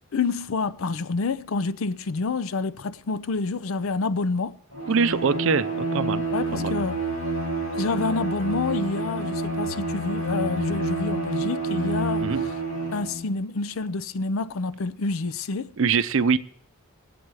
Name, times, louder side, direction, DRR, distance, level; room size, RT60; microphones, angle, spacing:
voice 1, 0.1-4.6 6.3-7.1 7.7-12.5 12.9-15.8, left 3 dB, 65° left, 0.5 m, -28 dB
Bowed string instrument, 4.7-13.3, right 2 dB, 80° left, 5.2 m, -28 dB
voice 2, 4.9-6.2 6.5-6.7 12.2-12.4 15.8-16.4, right 5 dB, 60° right, 0.5 m, -23 dB
20.5 x 7.9 x 4.7 m
head